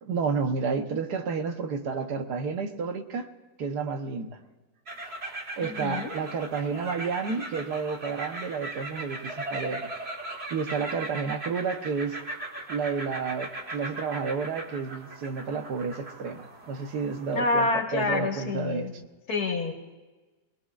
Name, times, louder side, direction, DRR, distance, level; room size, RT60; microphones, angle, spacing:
voice 1, 0.0-3.3 3.6-4.4 5.6-9.9 10.5-12.2 12.7-19.0, right 5 dB, 90° right, 1.6 m, -31 dB
sound 1, 4.9-17.4, right 2 dB, 40° right, 1.7 m, -38 dB
voice 2, 5.6-6.1 17.3-18.9 19.3-19.7, left 3 dB, 75° left, 2.1 m, -27 dB
27.0 x 19.5 x 2.5 m
omnidirectional pair, 1.7 m